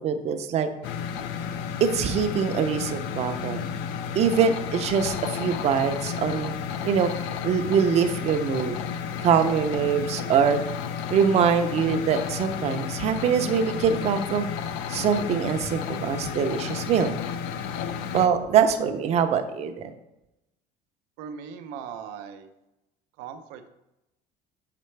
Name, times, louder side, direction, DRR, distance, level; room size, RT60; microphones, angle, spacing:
voice 1, 0.0-0.7 1.8-3.6 4.1-6.5 6.8-7.1 7.4-8.8 9.2-10.6 11.1-14.5 14.9-17.1 18.1-19.9, right 7 dB, 45° right, 8 dB, 0.6 m, -23 dB
sound 1, 0.8-18.3, left 7 dB, 85° left, 0.5 m, -32 dB
voice 2, 21.2-22.5 23.2-23.7, right 7 dB, 85° right, 8 dB, 0.6 m, -39 dB
6.7 x 4.3 x 3.2 m, 0.92 s
cardioid pair, 135°, 16 cm